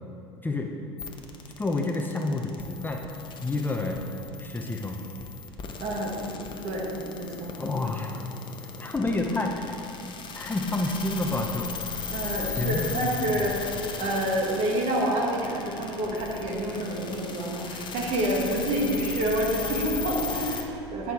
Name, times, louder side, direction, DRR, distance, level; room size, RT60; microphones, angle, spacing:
voice 1, 0.4-0.8 1.6-3.0 3.4-4.0 4.4-5.1 7.6-8.2 8.8-9.8 10.3-11.7 12.6-13.0 13.3-13.5, left 2 dB, 15° left, 2 dB, 0.8 m, -29 dB
sound 1, 1.0-20.6, left 5 dB, 35° left, 1.1 m, -37 dB
voice 2, 5.8-6.1 6.6-7.6 12.1-13.6 14.0-21.1, right 1 dB, 50° right, -2 dB, 2.1 m, -28 dB
10.5 x 6.2 x 4.8 m, 2.8 s
hypercardioid pair, 75°, 14 cm